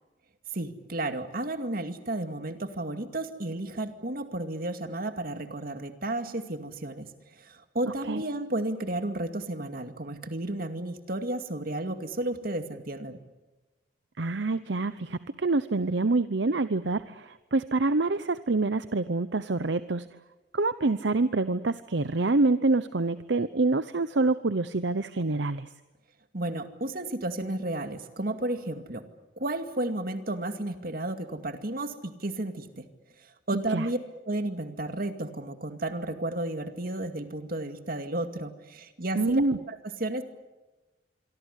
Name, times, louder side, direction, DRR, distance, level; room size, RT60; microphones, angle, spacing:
voice 1, 0.5-13.2 26.3-29.1 29.4-32.9 33.5-34.0 34.3-39.4 39.7-40.2, right 1 dB, 55° right, 8 dB, 2.3 m, -32 dB
voice 2, 14.2-20.1 20.5-25.7 33.5-33.9 39.1-39.6, right 3 dB, 70° right, 13 dB, 0.8 m, -26 dB
26.5 x 23.5 x 8.3 m, 1.1 s
head